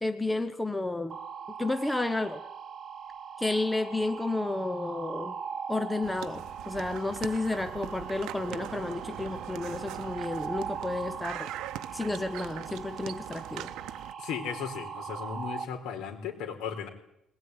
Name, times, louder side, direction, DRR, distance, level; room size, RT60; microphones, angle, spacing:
voice 1, 0.0-1.2 1.6-2.4 3.4-5.4 5.7-11.5 11.9-13.7, left 2 dB, 5° left, 10 dB, 0.8 m, -31 dB
sound 1, 1.1-15.6, right 7 dB, 30° right, 1.5 m, -40 dB
sound 2, 6.0-14.1, right 13 dB, 75° right, 0.8 m, -42 dB
voice 2, 14.2-16.9, left 7 dB, 70° left, 5 dB, 4.3 m, -36 dB
21.0 x 20.0 x 9.6 m, 0.81 s
cardioid pair, 180°, 0 cm